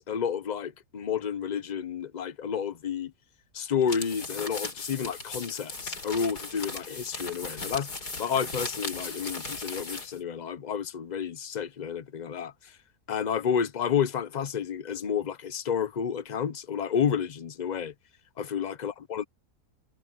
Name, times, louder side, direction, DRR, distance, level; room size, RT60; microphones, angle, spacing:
voice 1, 0.0-3.1 3.5-7.9 8.2-12.5 13.1-17.9 18.4-19.2, left 7 dB, 40° left, 0.7 m, -30 dB
sound 1, 3.8-10.2, left 3 dB, 80° left, 4.8 m, -37 dB
omnidirectional pair, 1.7 m